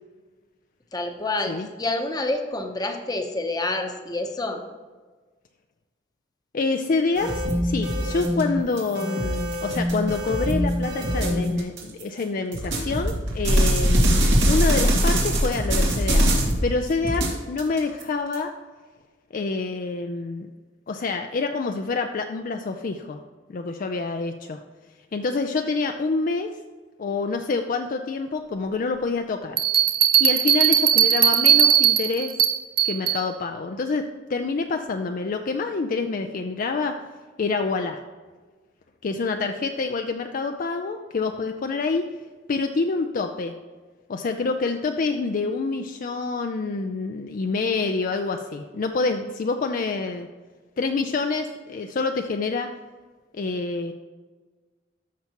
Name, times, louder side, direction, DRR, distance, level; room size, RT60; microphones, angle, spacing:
voice 1, 0.9-4.6, left 2 dB, 20° left, 4 dB, 0.8 m, -28 dB
voice 2, 6.5-16.3 16.6-18.5 19.3-20.5 20.9-23.2 23.5-24.6 25.1-26.5 27.0-29.6 30.2-32.3 32.8-37.0 37.4-38.0 39.0-42.1 42.5-43.6 44.1-50.3 50.8-52.7 53.3-53.9, left 4 dB, 50° left, 5 dB, 0.4 m, -27 dB
sound 1, 7.2-12.0 12.5-16.7 17.0-18.3, equal, 80° right, 2.1 m, -22 dB
sound 2, 29.6-33.2, right 10 dB, 55° right, 0.7 m, -19 dB
13.5 x 5.8 x 2.9 m, 1.4 s
head